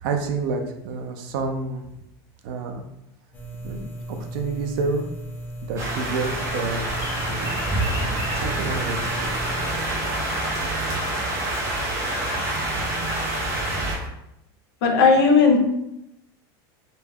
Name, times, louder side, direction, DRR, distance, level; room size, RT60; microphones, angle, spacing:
voice 1, 0.0-1.8 2.4-2.8 3.6-5.1 5.6-6.9 7.3-7.6 7.9-9.3, right 4 dB, 60° right, 4 dB, 0.4 m, -29 dB
sound 1, 3.3-9.6, right 1 dB, 15° left, 0.3 m, -36 dB
sound 2, 5.8-13.9, right 1 dB, 20° right, 0.6 m, -27 dB
sound 3, 6.9-14.1, equal, 35° left, 0.7 m, -37 dB
voice 2, 14.8-15.6, left 4 dB, 65° left, 3 dB, 0.6 m, -15 dB
2.2 x 2.1 x 3.3 m, 0.84 s
supercardioid pair, 160°, 13 cm